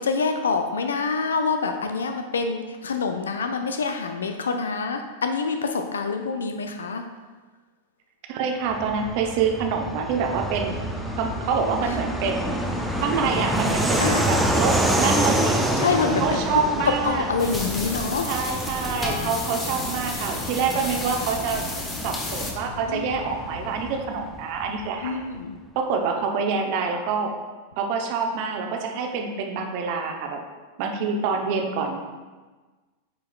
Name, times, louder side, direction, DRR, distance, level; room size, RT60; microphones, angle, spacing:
voice 1, 0.0-7.1 14.0-14.3 15.8-16.6 16.8-18.3 20.8-20.9 22.9-23.3 25.0-25.6, left 4 dB, 70° left, 6 dB, 0.4 m, -26 dB
voice 2, 8.3-10.8 11.2-12.5 13.0-15.7 16.2-17.3 18.3-21.7 22.0-25.2 25.8-27.3 27.8-30.4 30.8-32.0, right 5 dB, 45° right, 3 dB, 0.8 m, -26 dB
Fixed-wing aircraft airplane, 8.7-24.9, right 1 dB, 5° right, 0.6 m, -28 dB
sound 1, 10.6-24.0, left 2 dB, 40° left, 0.9 m, -41 dB
sound 2, 17.4-22.5, left 2 dB, 15° left, 1.0 m, -31 dB
9.2 x 4.6 x 2.3 m, 1.3 s
figure-of-eight pair, 90°, 0 cm